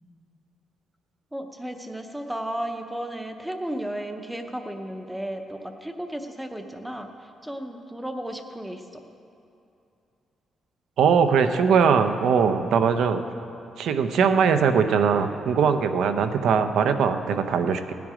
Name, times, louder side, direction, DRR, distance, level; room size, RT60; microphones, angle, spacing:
voice 1, 1.3-7.1 7.4-8.8, right 1 dB, 5° right, 5 dB, 0.7 m, -34 dB
voice 2, 11.0-13.2 13.8-17.9, right 6 dB, 70° right, 9 dB, 0.7 m, -21 dB
17.0 x 9.3 x 5.0 m, 2.7 s
cardioid pair, 175°, 0 cm